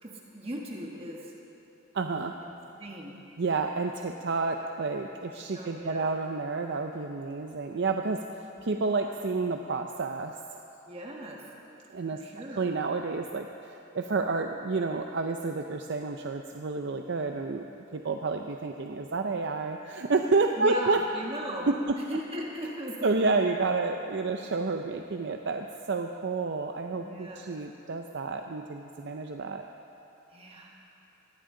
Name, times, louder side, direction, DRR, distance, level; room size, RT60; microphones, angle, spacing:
voice 1, 0.0-1.3 2.4-2.5 2.8-3.2 5.2-5.3 5.5-6.1 8.5-8.7 10.8-11.4 12.1-12.6 20.6-21.7 22.0-23.1 26.9-27.4 30.3-30.8, right 1 dB, 30° right, -2 dB, 1.4 m, -38 dB
voice 2, 1.9-2.3 3.4-10.3 11.9-12.2 12.6-21.0 21.7-22.0 23.0-29.7, right 3 dB, 60° right, 4 dB, 0.6 m, -30 dB
20.0 x 15.5 x 3.8 m, 2.9 s
head